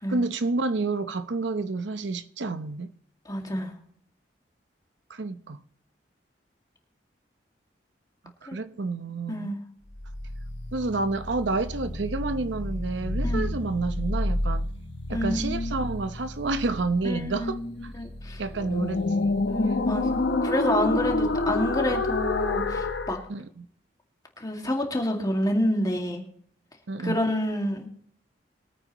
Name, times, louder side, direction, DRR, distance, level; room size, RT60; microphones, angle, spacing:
voice 1, 0.1-2.9 5.1-5.6 8.4-9.5 10.7-14.7 15.1-17.6 18.4-19.5 23.3-23.7 26.9-27.2, right 3 dB, 85° right, 0.8 m, -29 dB
voice 2, 3.3-3.7 8.5-8.6 9.3-9.6 13.2-13.5 15.1-15.8 17.0-18.4 19.5-23.2 24.4-26.2 27.0-27.9, left 1 dB, 20° left, 2.1 m, -28 dB
sound 1, 10.0-23.2, left 2 dB, 75° left, 1.0 m, -29 dB
22.0 x 9.0 x 3.0 m
head